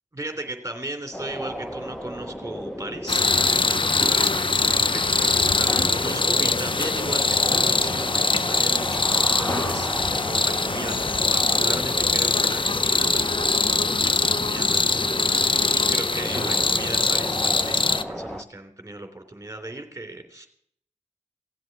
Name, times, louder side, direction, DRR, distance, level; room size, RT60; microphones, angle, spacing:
voice 1, 0.1-20.5, right 2 dB, 25° right, 6 dB, 3.2 m, -37 dB
sound 1, 1.1-18.4, equal, 5° left, 1.0 m, -35 dB
sound 2, 2.8-3.5 3.8-4.7 5.0-6.8 7.1-7.2 7.4-15.8 16.1-17.6 17.9-18.2, left 1 dB, 25° left, 5.3 m, -38 dB
sound 3, 3.1-18.0, left 3 dB, 40° left, 0.6 m, -22 dB
17.5 x 7.8 x 9.9 m, 0.66 s
wide cardioid pair, 85°, 13 cm